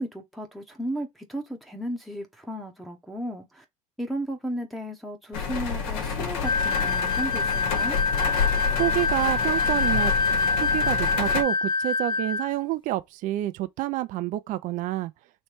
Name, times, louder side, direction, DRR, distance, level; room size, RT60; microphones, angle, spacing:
voice 1, 0.0-3.6 4.0-8.0, right 1 dB, ahead, 0.9 m, -34 dB
sound 1, 5.3-11.4, left 6 dB, 70° left, 1.5 m, -29 dB
sound 2, 6.4-12.5, left 4 dB, 25° left, 0.5 m, -25 dB
voice 2, 8.8-10.1 10.5-15.1, right 16 dB, 50° right, 0.5 m, -28 dB
3.3 x 3.1 x 4.4 m
supercardioid pair, 110°, 18 cm